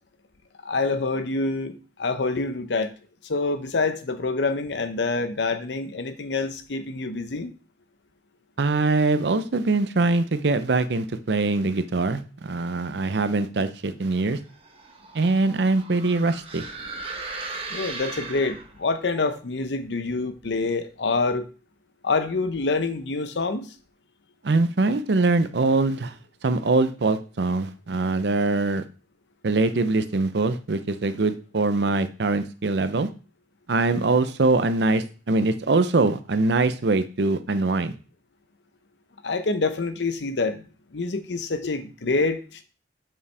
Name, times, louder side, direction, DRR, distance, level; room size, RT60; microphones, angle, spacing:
voice 1, 0.6-2.9 3.2-7.5 17.7-21.5 22.0-23.7 39.2-40.6 40.9-42.6, left 3 dB, 85° left, 10 dB, 0.7 m, -26 dB
voice 2, 8.6-14.4 15.1-16.7 24.4-26.2 26.4-28.8 29.4-33.1 33.7-38.0, right 3 dB, 70° right, 11 dB, 0.6 m, -23 dB
sound 1, 14.4-18.9, right 3 dB, 35° right, 1.0 m, -37 dB
7.2 x 5.5 x 3.3 m, 0.36 s
head